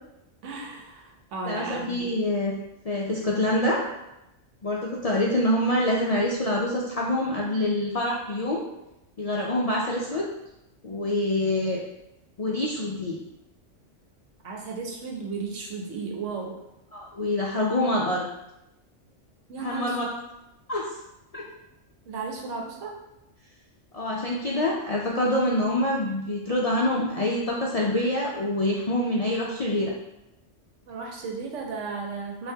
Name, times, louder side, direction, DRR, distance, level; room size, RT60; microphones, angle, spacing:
voice 1, 0.4-2.1 14.4-16.6 19.5-20.0 22.1-23.0 30.9-32.5, right 4 dB, 85° right, 1 dB, 1.1 m, -34 dB
voice 2, 1.5-2.5 2.8-3.8 4.6-8.7 9.2-10.3 10.8-11.8 12.4-13.2 16.9-18.3 19.6-20.1 20.7-20.9 21.3-21.5 23.9-29.9, left 1 dB, 60° left, -3 dB, 0.4 m, -26 dB
5.5 x 2.6 x 2.7 m, 0.89 s
omnidirectional pair, 1.2 m